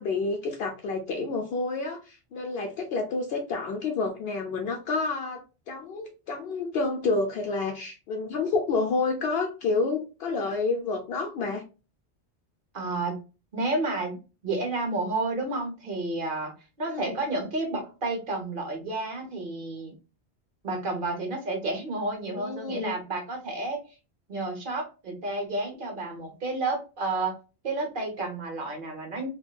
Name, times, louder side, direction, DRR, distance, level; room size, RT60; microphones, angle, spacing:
voice 1, 0.0-11.6 16.9-17.2 22.3-22.9, left 3 dB, 70° left, 3 dB, 0.8 m, -29 dB
voice 2, 12.7-13.2 13.5-14.2 14.4-16.5 16.8-19.9 20.6-23.8 24.3-27.3 27.6-29.3, right 2 dB, 55° right, 3 dB, 1.0 m, -31 dB
3.4 x 2.2 x 2.3 m, 0.31 s
omnidirectional pair, 1.1 m